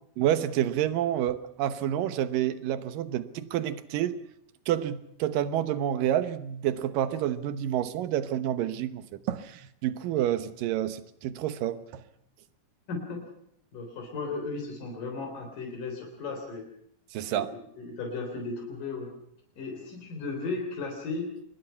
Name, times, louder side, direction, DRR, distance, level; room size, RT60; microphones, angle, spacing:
voice 1, 0.2-4.2 4.7-12.0 17.1-17.6, right 11 dB, 85° right, 13 dB, 2.8 m, -29 dB
voice 2, 12.9-13.2 13.7-16.7 17.3-19.1 19.6-21.3, left 3 dB, 75° left, 2 dB, 5.3 m, -35 dB
25.0 x 21.0 x 5.7 m, 0.71 s
omnidirectional pair, 3.8 m